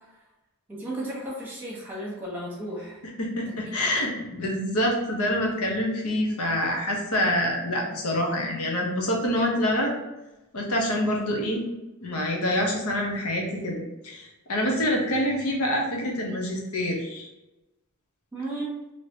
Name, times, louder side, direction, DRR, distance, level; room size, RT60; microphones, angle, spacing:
voice 1, 0.7-3.0 3.6-4.1 18.3-18.8, right 1 dB, 10° right, -5 dB, 1.1 m, -35 dB
voice 2, 3.2-4.1 4.4-9.9 10.5-11.6 12.0-17.3, left 1 dB, 80° left, 0 dB, 0.9 m, -26 dB
3.2 x 2.8 x 2.8 m, 1.0 s
head